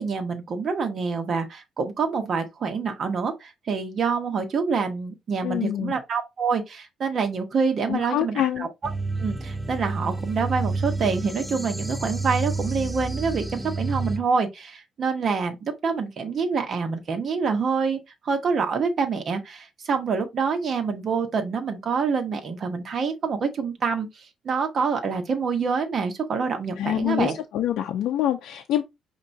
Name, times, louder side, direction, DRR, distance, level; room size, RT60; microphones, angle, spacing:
voice 1, 0.0-8.7 9.2-18.0 18.2-27.4, right 5 dB, 45° right, 1.1 m, -26 dB
voice 2, 5.4-5.9 7.9-8.7 26.8-28.8, left 12 dB, 85° left, 0.5 m, -25 dB
sound 1, 8.8-14.2, right 3 dB, 5° right, 0.6 m, -29 dB
5.5 x 2.9 x 2.6 m
cardioid pair, 120°, 0 cm